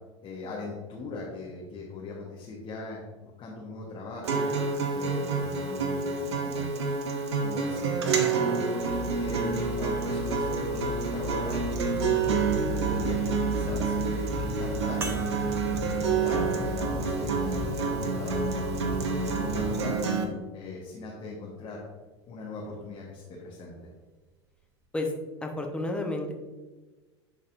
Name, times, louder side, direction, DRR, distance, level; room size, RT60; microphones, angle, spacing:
voice 1, 0.2-4.5 4.9-6.8 7.4-8.8 9.2-11.6 11.9-14.3 14.6-15.5 15.9-20.0 20.5-21.8 22.3-23.9, left 2 dB, 35° left, -4 dB, 1.3 m, -39 dB
Acoustic guitar, 4.2-20.2, right 5 dB, 70° right, 0.8 m, -29 dB
sound 1, 8.8-19.8, left 1 dB, 60° left, 1.5 m, -35 dB
sound 2, 15.0-19.8 20.6-20.7 22.8-22.9, right 5 dB, 15° right, 0.8 m, -43 dB
voice 2, 25.4-26.3, left 2 dB, 5° left, 1 dB, 1.0 m, -31 dB
10.5 x 4.1 x 2.6 m, 1.2 s
figure-of-eight pair, 80°, 15 cm